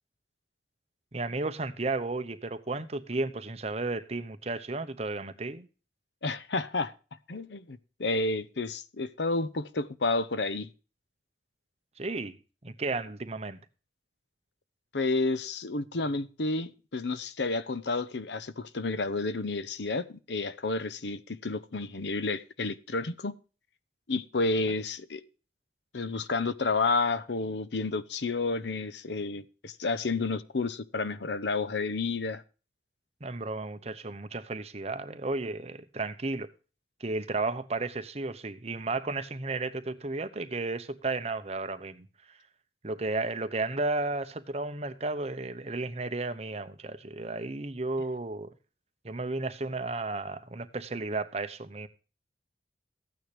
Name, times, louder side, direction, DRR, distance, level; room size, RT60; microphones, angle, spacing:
voice 1, 1.1-5.7 12.0-12.4 12.6-13.6 33.2-36.5 37.0-42.1 42.8-48.5 49.0-51.9, right 3 dB, 35° right, 0.9 m, -33 dB
voice 2, 6.2-6.9 7.3-10.7 14.9-23.3 24.1-25.2 25.9-32.4, left 3 dB, 85° left, 0.8 m, -30 dB
14.5 x 9.3 x 3.3 m
head